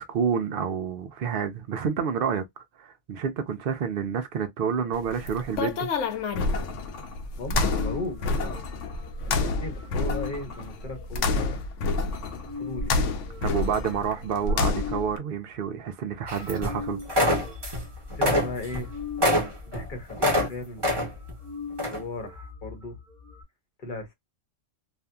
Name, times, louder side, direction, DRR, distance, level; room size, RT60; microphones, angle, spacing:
voice 1, 0.0-2.4 2.8-5.9 13.4-17.0, right 7 dB, 60° right, 0.6 m, -29 dB
sound 1, 5.0-15.2, left 3 dB, 80° left, 0.9 m, -28 dB
voice 2, 7.4-8.7 9.2-11.6 12.6-12.9 18.1-18.9 19.6-21.1 21.9-23.0 23.8-24.1, left 2 dB, 45° left, 1.0 m, -37 dB
sound 2, 7.7-15.1 15.8-15.9 16.1-23.4, left 5 dB, ahead, 1.0 m, -41 dB
sound 3, 16.3-16.8 17.1-17.8 18.1-20.5 20.8-21.3 21.8-22.0, left 1 dB, 25° right, 0.9 m, -25 dB
2.6 x 2.4 x 2.2 m
omnidirectional pair, 1.2 m